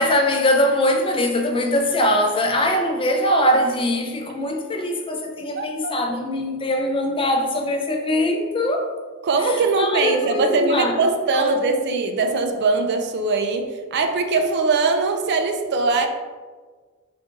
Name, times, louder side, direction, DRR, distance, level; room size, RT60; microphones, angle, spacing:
voice 1, 0.0-8.9 9.4-10.9 11.3-11.5, left 1 dB, 25° left, 0.4 m, -22 dB
voice 2, 5.6-5.9 9.2-16.1, right 3 dB, 50° right, 0.4 m, -21 dB
3.9 x 2.5 x 3.6 m
head